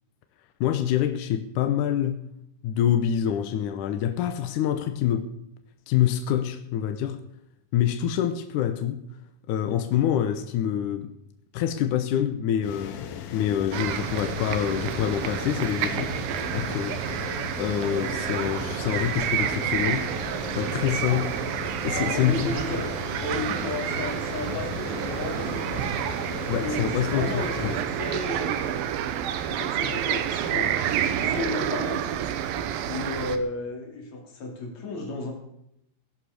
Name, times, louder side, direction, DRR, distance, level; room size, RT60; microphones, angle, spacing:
voice 1, 0.6-2.2 2.6-5.3 5.9-7.2 7.7-9.0 9.5-11.1 11.5-13.0 13.3-16.2 16.5-17.3 17.6-20.1 20.5-21.3 21.8-22.5 26.5-27.8, left 10 dB, 75° left, 2.3 m, -26 dB
sound 1, 12.6-27.9, left 8 dB, 90° left, 3.1 m, -37 dB
sound 2, 13.7-33.4, right 10 dB, 85° right, 2.8 m, -29 dB
voice 2, 21.9-26.2 26.6-28.8 29.5-30.8 31.1-32.4 32.9-35.3, left 2 dB, 55° left, 4.2 m, -34 dB
16.5 x 11.0 x 6.7 m
omnidirectional pair, 4.0 m